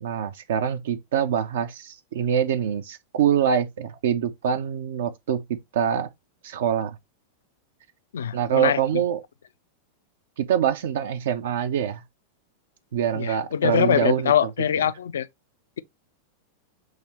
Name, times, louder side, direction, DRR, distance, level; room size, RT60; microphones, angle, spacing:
voice 1, 0.0-5.4 5.7-6.1 6.4-7.0 8.3-9.2 10.4-12.0 12.9-14.3, right 8 dB, 60° right, 0.4 m, -24 dB
voice 2, 8.1-8.8 13.1-15.3, left 9 dB, 65° left, 0.3 m, -23 dB
6.3 x 2.7 x 3.0 m
figure-of-eight pair, 90°, 0 cm